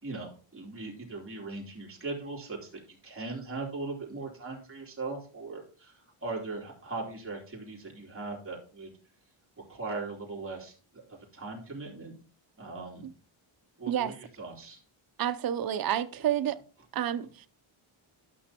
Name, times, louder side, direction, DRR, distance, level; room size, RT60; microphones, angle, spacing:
voice 1, 0.0-8.9 9.6-12.1 12.6-13.1 13.8-14.8, right 3 dB, 25° right, 3.1 m, -39 dB
voice 2, 15.2-16.6 16.9-17.5, right 10 dB, 45° right, 0.6 m, -29 dB
12.0 x 6.0 x 2.9 m
cardioid pair, 115°, 49 cm